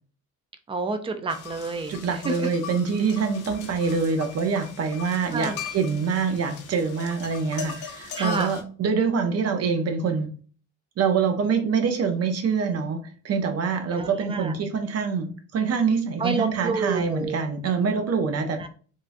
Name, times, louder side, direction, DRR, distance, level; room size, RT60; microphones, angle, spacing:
voice 1, 0.7-1.9 2.2-2.5 5.3-5.6 8.2-8.5 13.9-14.5 16.2-17.4 18.6-18.7, right 3 dB, 20° right, 8 dB, 0.4 m, -29 dB
sound 1, 1.3-8.6, left 7 dB, 85° left, 0.8 m, -39 dB
voice 2, 1.9-10.3 11.0-18.7, right 5 dB, 55° right, 6 dB, 0.7 m, -25 dB
3.6 x 2.3 x 2.6 m, 0.40 s
cardioid pair, 90°, 30 cm